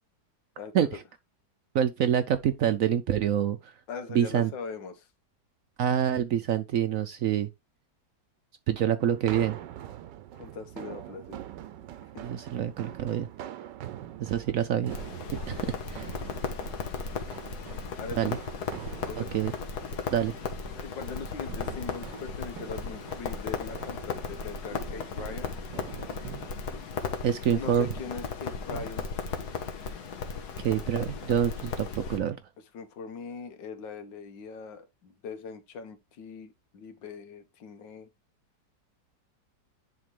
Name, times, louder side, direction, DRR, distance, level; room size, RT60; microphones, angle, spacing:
voice 1, 0.6-0.9 3.9-5.1 10.3-11.4 12.1-12.2 18.0-18.3 19.0-19.3 19.8-20.0 20.8-25.5 25.9-26.0 27.5-29.2 32.6-38.1, left 5 dB, 90° left, 1.8 m, -41 dB
voice 2, 1.7-3.7 4.1-4.5 5.8-7.5 8.7-9.6 12.2-13.3 14.2-15.0 15.5-16.1 18.2-18.4 19.2-19.5 20.1-20.3 27.2-27.9 30.6-32.4, right 9 dB, 65° right, 0.8 m, -26 dB
sound 1, 9.0-26.5, right 12 dB, 80° right, 1.3 m, -44 dB
Crackle, 14.9-32.2, left 5 dB, 65° left, 1.7 m, -36 dB
10.5 x 3.7 x 3.2 m
omnidirectional pair, 1.9 m